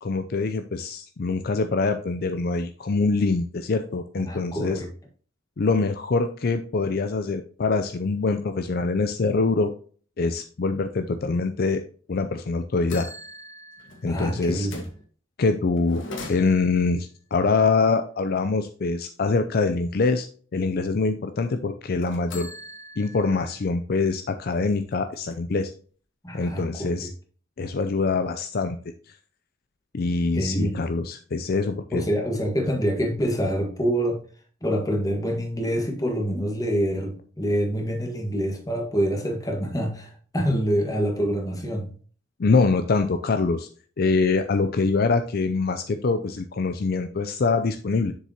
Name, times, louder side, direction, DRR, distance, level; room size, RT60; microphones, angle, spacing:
voice 1, 0.0-4.8 5.6-9.7 10.2-13.1 14.0-14.7 15.4-16.0 16.3-20.3 20.5-22.5 23.0-25.7 26.3-27.1 27.6-28.8 29.1-29.2 29.9-32.1 42.4-43.7 44.0-48.1, left 4 dB, 50° left, 8 dB, 0.5 m, -24 dB
voice 2, 4.2-4.9 14.0-14.8 26.2-27.1 30.3-30.8 31.9-34.2 34.6-41.9, equal, 20° left, 2 dB, 1.6 m, -26 dB
sound 1, 12.3-12.4 12.9-15.0 15.8-16.9 22.0-23.6 24.0-24.1 24.5-25.6, left 1 dB, 75° left, 1.7 m, -41 dB
7.5 x 6.7 x 2.9 m, 0.44 s
head